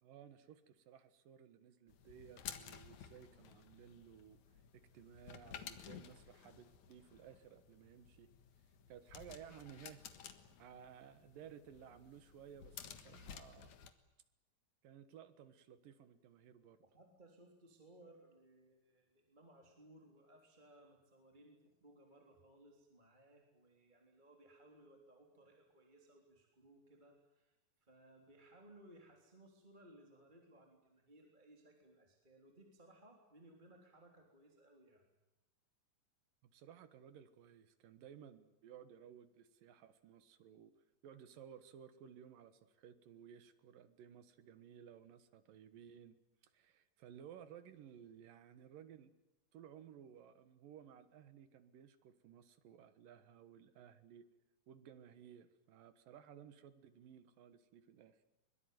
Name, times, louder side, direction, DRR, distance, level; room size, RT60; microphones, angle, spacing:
voice 1, 0.0-4.4 4.7-8.3 8.9-10.0 10.6-13.8 14.8-16.8 36.4-40.7 41.0-46.2 46.5-49.1 49.5-54.2 54.7-58.2, right 9 dB, 75° right, 12 dB, 3.1 m, -57 dB
sound 1, 1.9-13.9, left 8 dB, 60° left, 2.7 m, -54 dB
voice 2, 16.8-35.1, right 1 dB, 15° right, 2 dB, 3.3 m, -63 dB
23.5 x 22.0 x 9.4 m, 0.97 s
omnidirectional pair, 4.0 m